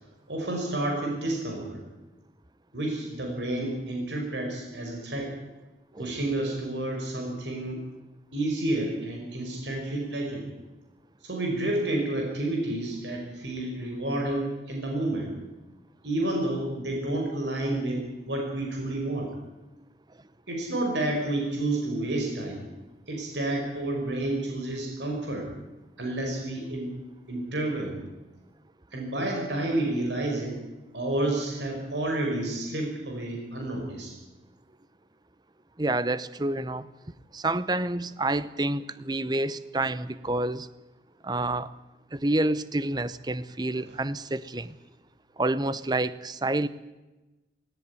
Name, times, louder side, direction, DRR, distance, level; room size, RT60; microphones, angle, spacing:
voice 1, 0.3-1.8 2.7-5.3 6.0-7.8 8.3-10.5 11.2-15.3 16.0-19.3 20.5-22.7 23.1-25.5 26.0-26.9 27.3-28.0 28.9-30.5 30.9-34.1 43.9-44.0, right 1 dB, 85° right, 1 dB, 5.3 m, -30 dB
voice 2, 35.8-36.9 37.3-40.7 41.2-41.7 42.1-44.7 45.4-46.7, right 2 dB, 25° right, 16 dB, 0.8 m, -28 dB
18.0 x 17.5 x 9.8 m, 1.1 s
head